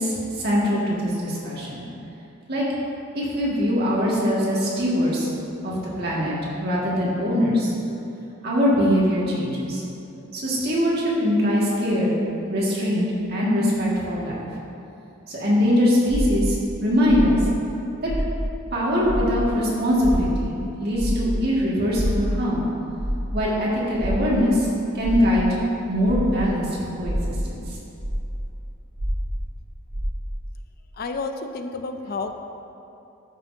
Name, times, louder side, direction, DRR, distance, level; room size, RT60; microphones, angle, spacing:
voice 1, 0.0-1.8 2.5-2.6 3.2-5.3 5.6-7.7 8.4-9.8 10.3-12.2 12.5-14.4 15.3-17.4 18.0-18.1 18.7-22.6 23.3-24.7 24.9-25.4 25.9-27.6, equal, 50° right, -6 dB, 1.9 m, -22 dB
sound 1, 16.1-18.7 19.0-26.6 27.0-30.5, equal, 85° right, 1.5 m, -28 dB
voice 2, 31.0-32.3, left 3 dB, 50° left, 7 dB, 0.4 m, -30 dB
13.0 x 6.1 x 2.7 m, 2.8 s
head